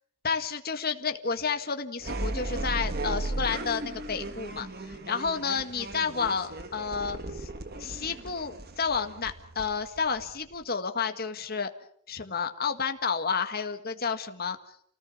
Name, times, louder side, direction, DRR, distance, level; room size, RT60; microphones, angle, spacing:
voice 1, 0.2-7.5 7.8-11.7 12.1-14.6, left 5 dB, 45° left, 7 dB, 1.8 m, -31 dB
sound 1, 2.0-10.6, right 2 dB, 45° right, 1.6 m, -36 dB
29.0 x 18.5 x 7.2 m, 0.67 s
head